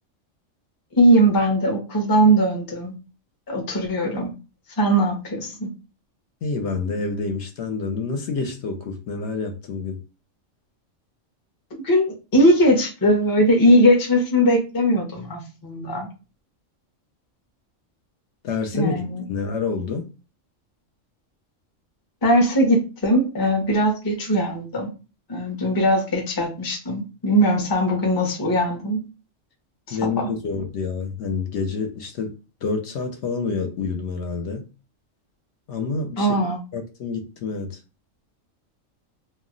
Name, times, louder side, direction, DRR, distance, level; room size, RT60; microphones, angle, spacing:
voice 1, 0.9-3.0 3.5-4.3 4.8-5.7 11.8-16.1 18.7-19.2 22.2-24.9 25.3-29.0 29.9-30.3 36.2-36.6, equal, 25° left, 2 dB, 0.4 m, -20 dB
voice 2, 6.4-10.0 18.4-19.0 19.3-20.1 29.9-32.3 32.6-34.6 35.7-36.3 36.7-37.8, left 4 dB, 65° left, 4 dB, 0.8 m, -27 dB
2.4 x 2.0 x 3.7 m, 0.32 s
omnidirectional pair, 1.4 m